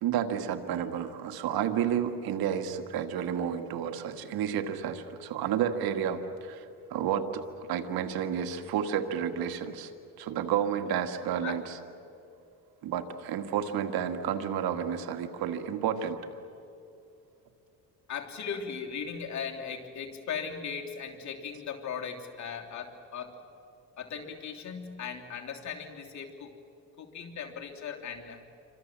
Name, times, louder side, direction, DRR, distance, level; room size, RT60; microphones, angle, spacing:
voice 1, 0.0-6.7 6.9-9.9 10.2-11.8 12.8-16.2, right 9 dB, 75° right, 7 dB, 1.9 m, -31 dB
voice 2, 7.3-7.9 11.4-11.6 18.1-23.4 24.0-26.6 27.0-28.4, left 6 dB, 50° left, 2 dB, 3.2 m, -38 dB
28.0 x 25.0 x 7.5 m, 2.7 s
cardioid pair, 100°, 37 cm